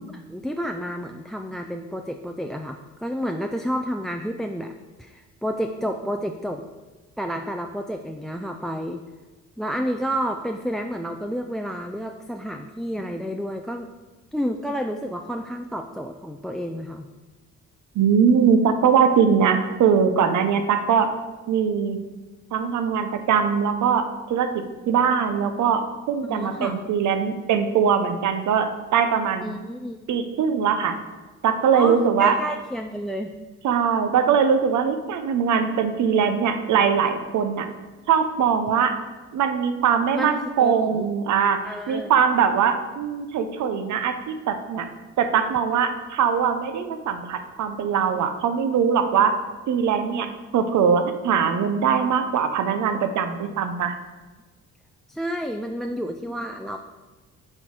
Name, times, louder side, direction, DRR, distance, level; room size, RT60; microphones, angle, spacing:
voice 1, 0.1-4.7 5.0-6.6 7.2-9.0 9.6-13.9 14.3-17.1 25.4-25.5 26.3-26.8 29.4-30.0 31.7-33.3 40.1-41.1 41.6-42.1 55.1-56.8, equal, ahead, 5 dB, 0.3 m, -30 dB
voice 2, 17.9-21.1 21.5-22.0 22.5-24.5 24.9-25.8 26.1-29.5 30.1-30.9 31.4-32.3 33.6-37.7 38.1-38.9 39.3-41.6 41.9-44.9 45.2-49.3 49.7-50.3 50.5-54.0, right 7 dB, 70° right, 8 dB, 0.8 m, -21 dB
7.6 x 4.5 x 4.7 m, 1.2 s
cardioid pair, 90°, 30 cm